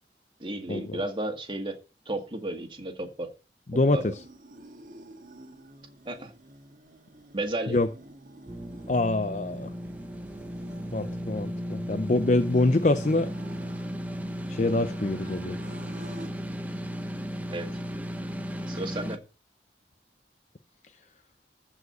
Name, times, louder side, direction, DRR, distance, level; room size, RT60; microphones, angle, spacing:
voice 1, 0.4-1.8 2.1-3.3 3.9-4.1 6.1-6.3 7.3-7.8 17.5-17.7 18.7-19.2, right 1 dB, 30° right, 2.0 m, -33 dB
voice 2, 3.7-4.0 7.7-7.9 8.9-9.7 10.9-13.3 14.5-15.6, left 2 dB, 40° left, 0.6 m, -25 dB
sound 1, 4.0-16.3, right 1 dB, 50° right, 1.6 m, -50 dB
sound 2, 8.5-19.2, equal, 10° right, 1.0 m, -35 dB
14.5 x 4.9 x 8.0 m
head